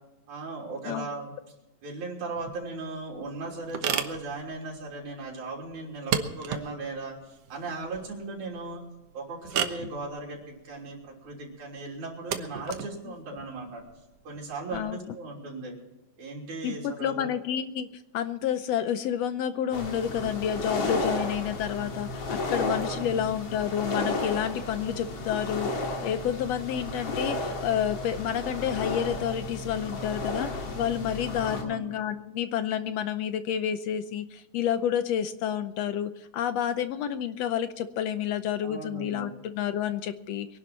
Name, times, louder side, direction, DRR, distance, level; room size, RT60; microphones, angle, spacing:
voice 1, 0.3-1.3 1.8-7.1 7.5-8.8 9.1-13.8 14.2-15.7 16.2-17.3 22.8-23.3 31.4-31.9 38.6-39.3, right 3 dB, 80° right, -3 dB, 4.7 m, -37 dB
sound 1, 2.4-14.8, right 8 dB, 65° right, 2.1 m, -36 dB
voice 2, 16.6-17.9 18.1-40.6, left 9 dB, 75° left, 11 dB, 1.7 m, -29 dB
sound 2, 19.7-31.6, left 2 dB, 55° left, 3.3 m, -33 dB
23.5 x 11.5 x 4.3 m, 0.99 s
omnidirectional pair, 3.3 m